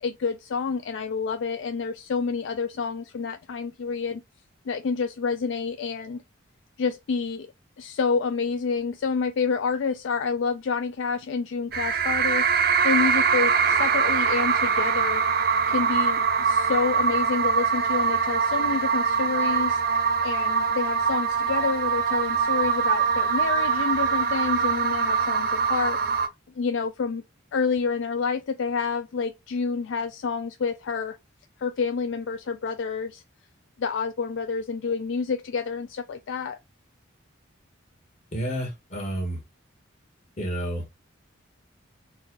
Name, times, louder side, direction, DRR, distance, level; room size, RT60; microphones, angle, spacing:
voice 1, 0.0-4.2 4.7-6.2 6.8-7.5 7.8-15.2 15.7-19.8 20.2-26.0 26.6-27.2 27.5-31.2 31.6-33.2 33.8-36.6, left 5 dB, 60° left, 0.3 m, -28 dB
sound 1, 11.7-26.3, right 6 dB, 50° right, 0.6 m, -23 dB
voice 2, 38.3-39.4 40.4-40.8, right 1 dB, 35° left, 1.6 m, -30 dB
4.1 x 2.3 x 3.9 m
head